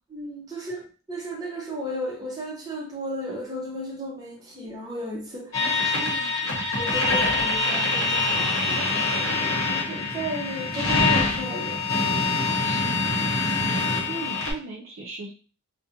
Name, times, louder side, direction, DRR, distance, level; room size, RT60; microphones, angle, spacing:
voice 1, 0.1-5.6 6.8-11.8, equal, 20° right, -2 dB, 0.6 m, -34 dB
sound 1, 5.5-14.5, left 3 dB, 70° left, 0.9 m, -24 dB
voice 2, 5.5-6.6 12.5-13.2 13.6-15.3, right 2 dB, 65° right, 0 dB, 0.5 m, -38 dB
2.4 x 2.1 x 2.8 m, 0.38 s
head